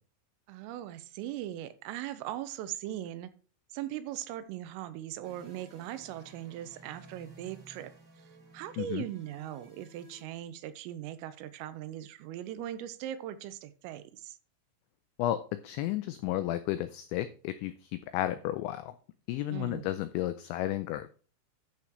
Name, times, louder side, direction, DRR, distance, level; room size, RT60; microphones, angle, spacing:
voice 1, 0.5-3.3 3.7-7.9 8.5-14.4 19.5-19.9, right 12 dB, 85° right, 12 dB, 3.3 m, -39 dB
sound 1, 5.2-10.2, right 1 dB, 25° right, 2.2 m, -55 dB
voice 2, 15.2-18.9 19.3-21.1, left 14 dB, 90° left, 11 dB, 2.6 m, -33 dB
11.5 x 7.1 x 3.2 m, 0.39 s
omnidirectional pair, 6.0 m